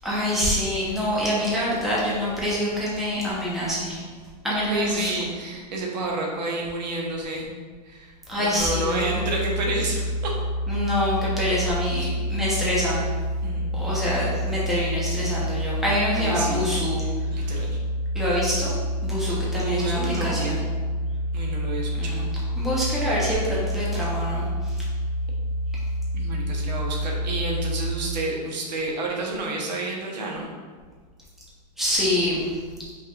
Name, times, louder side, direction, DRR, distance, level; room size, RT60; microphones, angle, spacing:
voice 1, 0.0-4.0 4.4-5.1 8.3-9.2 10.7-13.1 13.7-17.1 17.4-17.5 18.1-18.7 19.0-20.6 22.0-22.3 22.6-24.8 31.8-32.5, equal, ahead, -8 dB, 0.8 m, -26 dB
voice 2, 4.6-7.5 7.9-10.3 12.0-12.1 13.4-13.8 16.1-16.7 17.3-17.8 19.5-20.7 21.3-22.3 26.1-30.5, right 2 dB, 85° right, -1 dB, 1.0 m, -30 dB
sound 1, 8.6-27.9, equal, 25° right, 0.9 m, -28 dB
5.2 x 3.4 x 2.4 m, 1.5 s
supercardioid pair, 160°, 21 cm